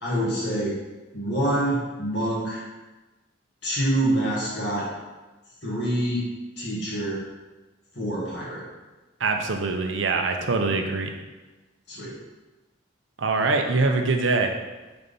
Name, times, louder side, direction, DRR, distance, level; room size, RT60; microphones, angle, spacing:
voice 1, 0.0-0.7 1.1-2.6 3.6-4.9 5.6-6.3 6.6-7.2 7.9-8.6 11.9-12.2 13.4-13.5, right 1 dB, 65° left, -7 dB, 1.9 m, -26 dB
voice 2, 9.2-11.1 13.2-14.5, right 3 dB, 80° right, 4 dB, 0.7 m, -23 dB
4.4 x 4.1 x 5.2 m, 1.2 s
head